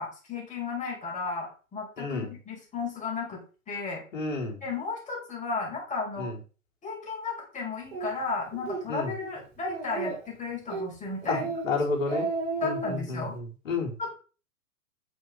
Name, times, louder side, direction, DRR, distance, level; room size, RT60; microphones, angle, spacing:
voice 1, 0.0-3.4 3.7-4.0 4.6-6.3 6.8-11.5 12.6-13.4 14.0-14.1, left 4 dB, 15° left, -1 dB, 5.2 m, -34 dB
voice 2, 2.0-2.3 4.1-4.6 6.2-6.4 8.9-9.1 11.3-11.4 11.6-12.3 12.6-13.9, left 3 dB, 60° left, 1 dB, 4.2 m, -30 dB
Speech, 7.9-8.1 8.5-8.8 9.2-9.3 9.7-10.3 10.7-10.9 11.2-11.6 11.9-13.0, right 4 dB, 45° right, 5.1 m, -32 dB
10.0 x 6.6 x 5.1 m, 0.36 s
figure-of-eight pair, 115°, 43 cm